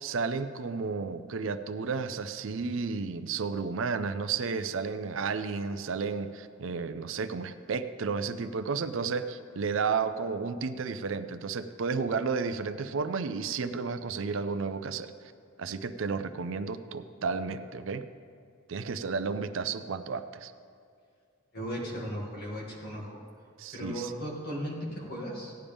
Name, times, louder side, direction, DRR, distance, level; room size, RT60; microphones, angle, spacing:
voice 1, 0.0-15.1 15.6-18.0 18.7-20.5 23.6-24.1, right 5 dB, 70° right, 11 dB, 0.5 m, -32 dB
voice 2, 21.5-23.2 23.7-25.5, equal, 50° left, -4 dB, 2.4 m, -36 dB
16.5 x 10.0 x 3.5 m, 2.3 s
head